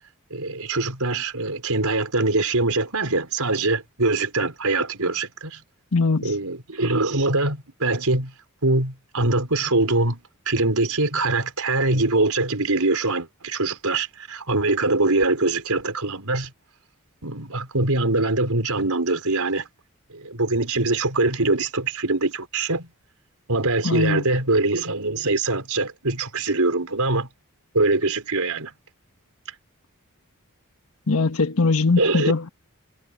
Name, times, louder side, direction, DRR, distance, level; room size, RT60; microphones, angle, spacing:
voice 1, 0.3-5.6 6.2-8.3 8.6-10.2 10.5-16.5 17.2-19.7 20.1-22.9 23.5-27.3 27.7-28.7 32.0-32.3, right 2 dB, 85° right, 4.5 m, -23 dB
voice 2, 5.9-6.3 23.8-24.2 31.1-32.5, left 3 dB, 75° left, 1.3 m, -21 dB
head